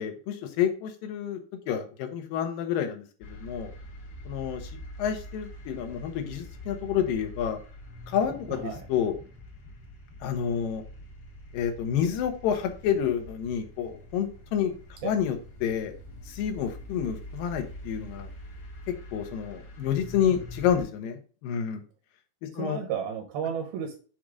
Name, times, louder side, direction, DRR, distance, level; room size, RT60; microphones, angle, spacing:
voice 1, 0.0-1.4 1.7-3.7 4.3-4.7 5.0-7.6 8.1-9.2 10.2-10.8 11.5-14.7 15.0-15.4 15.6-15.9 16.3-18.3 19.1-21.8 22.4-22.8, left 8 dB, 75° left, 6 dB, 2.5 m, -29 dB
sound 1, 3.2-20.8, equal, 50° left, 1.6 m, -44 dB
voice 2, 8.5-8.9 15.0-15.1 22.5-24.0, right 8 dB, 80° right, 2 dB, 2.9 m, -33 dB
7.4 x 2.6 x 4.8 m, 0.38 s
omnidirectional pair, 4.3 m